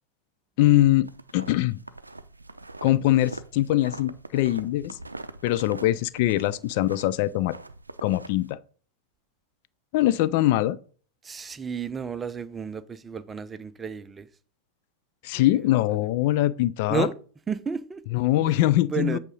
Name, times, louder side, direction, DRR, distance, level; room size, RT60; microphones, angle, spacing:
voice 1, 0.6-1.8 2.8-5.0 5.4-7.5 8.0-8.6 9.9-10.8 15.2-17.1 18.1-19.2, left 15 dB, 50° left, 0.3 m, -22 dB
sound 1, 1.0-8.5, right 2 dB, 80° right, 0.4 m, -43 dB
voice 2, 11.2-14.3 15.3-15.7 16.9-17.2 17.5-18.0 18.9-19.2, right 6 dB, 15° right, 0.5 m, -32 dB
8.1 x 3.6 x 5.3 m
figure-of-eight pair, 90°, 0 cm